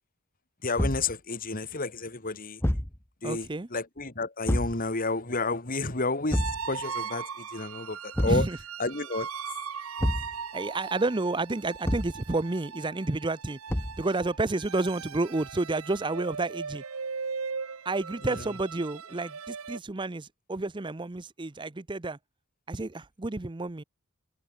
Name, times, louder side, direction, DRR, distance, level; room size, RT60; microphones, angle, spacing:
voice 1, 0.6-2.6 3.2-8.5 8.8-9.3, left 3 dB, 40° left, 2.6 m, -31 dB
Thump thud, 0.8-1.1 2.6-3.0 4.5-4.8 6.3-6.7 8.1-8.5 10.0-10.3 11.8-12.2 13.7-14.0, equal, 10° left, 1.2 m, -27 dB
voice 2, 3.2-3.7 8.3-8.6 10.5-13.6 14.0-16.8 17.8-22.2 22.7-23.8, right 2 dB, 20° right, 0.6 m, -30 dB
sound 1, 6.3-19.8, right 6 dB, 80° right, 1.1 m, -39 dB
head